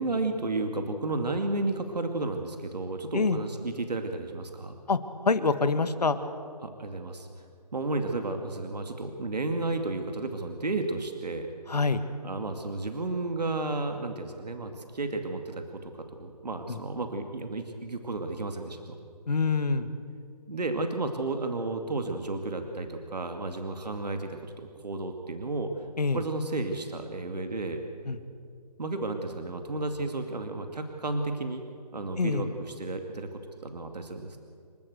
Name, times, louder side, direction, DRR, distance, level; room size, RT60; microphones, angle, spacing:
voice 1, 0.0-4.8 6.6-7.3 7.7-11.5 12.2-19.0 20.5-25.7 26.1-27.8 28.8-31.6 31.9-34.4, right 2 dB, 75° right, 5 dB, 2.4 m, -32 dB
voice 2, 5.3-6.2 11.7-12.0 16.7-16.8 19.3-19.9 26.0-26.2 28.1-28.2 32.2-32.5, left 4 dB, 70° left, 11 dB, 1.9 m, -25 dB
28.5 x 13.0 x 8.0 m, 2.3 s
figure-of-eight pair, 160°, 21 cm